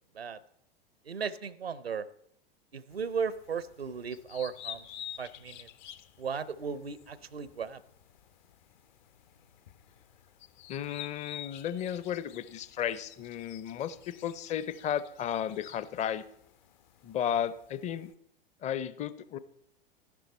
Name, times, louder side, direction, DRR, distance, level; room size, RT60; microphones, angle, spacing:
voice 1, 1.1-2.0 2.7-4.8 5.2-5.7 6.2-7.8, right 6 dB, 85° right, 18 dB, 0.7 m, -36 dB
sound 1, 2.9-18.1, left 11 dB, 50° left, 0.9 m, -50 dB
voice 2, 10.7-16.2 17.0-18.1 18.6-19.4, left 9 dB, 25° left, 15 dB, 0.6 m, -34 dB
13.0 x 10.5 x 4.2 m, 0.75 s
figure-of-eight pair, 95°, 29 cm